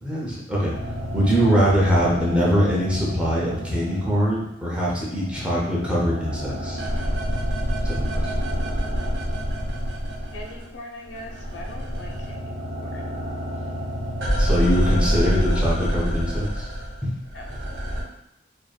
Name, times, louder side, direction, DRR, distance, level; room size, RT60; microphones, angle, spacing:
voice 1, 0.0-0.8 1.1-6.8 7.8-8.5 14.4-16.7 17.0-17.1, equal, 5° right, -6 dB, 0.5 m, -23 dB
sound 1, 0.7-4.5 4.8-10.8 11.0-18.0, equal, 75° right, 0.6 m, -27 dB
voice 2, 10.3-12.5 12.8-13.1 17.3-17.6, left 1 dB, 75° left, 1 dB, 0.4 m, -41 dB
2.5 x 2.5 x 2.2 m, 0.83 s
head